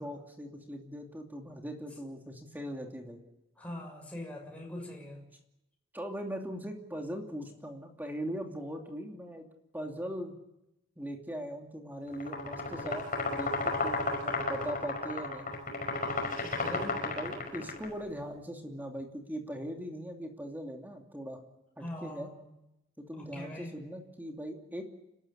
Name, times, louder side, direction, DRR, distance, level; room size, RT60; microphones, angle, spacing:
voice 1, 0.0-3.2 5.9-9.4 9.7-10.3 11.0-15.5 17.0-21.4 21.8-22.3 23.0-24.8, equal, 10° right, 2 dB, 2.8 m, -40 dB
voice 2, 3.6-5.2 16.4-17.0 21.8-22.4 23.2-23.7, left 1 dB, 5° left, 0 dB, 6.9 m, -42 dB
sound 1, 12.1-17.9, left 3 dB, 40° left, 5.2 m, -33 dB
30.0 x 13.5 x 9.9 m, 0.89 s
head